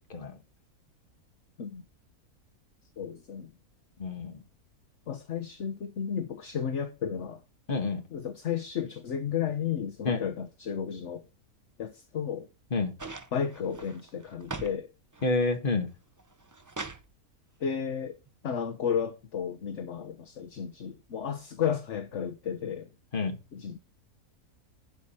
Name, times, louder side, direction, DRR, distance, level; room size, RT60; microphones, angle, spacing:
voice 1, 3.0-3.5 5.1-7.4 8.1-11.2 11.8-12.5 13.3-14.9 17.6-18.2 18.4-22.9 23.5-23.8, left 8 dB, 55° left, 1.1 m, -33 dB
voice 2, 4.0-4.4 7.7-8.0 10.0-10.2 12.7-12.9 15.2-15.9 23.1-23.4, left 3 dB, 35° left, 1.7 m, -28 dB
sound 1, 13.0-14.8 15.1-15.7 16.2-17.1 18.3-18.4, right 3 dB, 30° right, 0.3 m, -41 dB
11.5 x 4.8 x 5.6 m
omnidirectional pair, 1.6 m